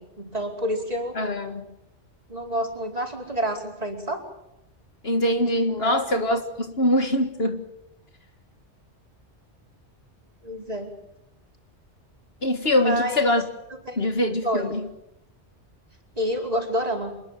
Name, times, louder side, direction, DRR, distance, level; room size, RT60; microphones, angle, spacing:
voice 1, 0.0-1.2 2.3-4.2 5.7-6.0 10.4-10.9 12.7-13.4 13.9-14.0 14.4-14.7 16.1-17.1, equal, 35° right, 1 dB, 4.9 m, -28 dB
voice 2, 1.2-1.6 5.0-7.6 12.4-13.4 14.0-14.8, left 1 dB, 60° left, 6 dB, 2.0 m, -23 dB
27.0 x 21.5 x 7.6 m, 0.87 s
omnidirectional pair, 1.2 m